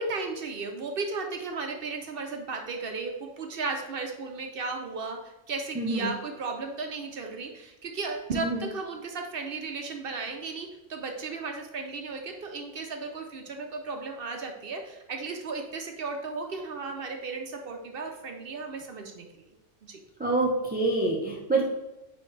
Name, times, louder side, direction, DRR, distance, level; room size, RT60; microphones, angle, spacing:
voice 1, 0.0-19.4 19.8-20.0, right 4 dB, 60° right, 4 dB, 0.8 m, -35 dB
voice 2, 5.7-6.1 8.3-8.6 20.2-21.6, right 2 dB, 10° right, -3 dB, 0.6 m, -26 dB
9.3 x 3.2 x 3.2 m, 0.99 s
omnidirectional pair, 1.2 m